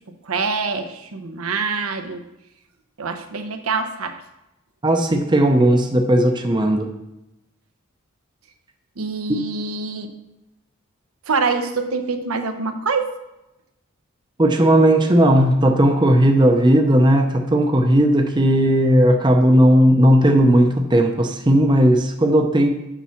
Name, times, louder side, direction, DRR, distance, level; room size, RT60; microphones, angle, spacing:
voice 1, 0.2-2.3 3.0-4.2 9.0-10.1 11.3-13.1, right 4 dB, 75° right, 6 dB, 0.8 m, -25 dB
voice 2, 4.8-6.9 14.4-22.7, right 1 dB, 20° right, 3 dB, 0.6 m, -16 dB
7.1 x 6.0 x 5.7 m, 0.94 s
head